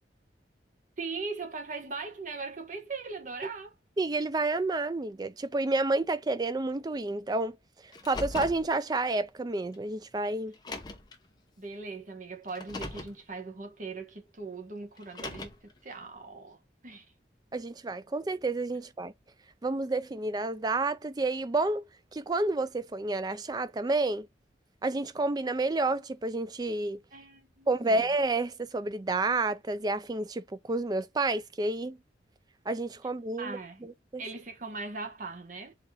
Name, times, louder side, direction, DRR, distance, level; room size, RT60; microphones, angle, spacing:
voice 1, 1.0-3.7 11.6-17.1 27.1-28.0 33.4-33.9 34.2-35.7, right 4 dB, 45° right, 1.0 m, -40 dB
voice 2, 4.0-7.6 8.1-10.5 17.5-19.1 19.6-24.3 24.8-27.0 27.7-32.0 32.7-34.2, right 2 dB, 20° right, 0.4 m, -30 dB
Car, 7.9-8.7 9.7-9.8 10.5-11.1 12.5-13.2 15.0-15.7, left 2 dB, 20° left, 0.7 m, -39 dB
4.0 x 2.8 x 3.4 m
head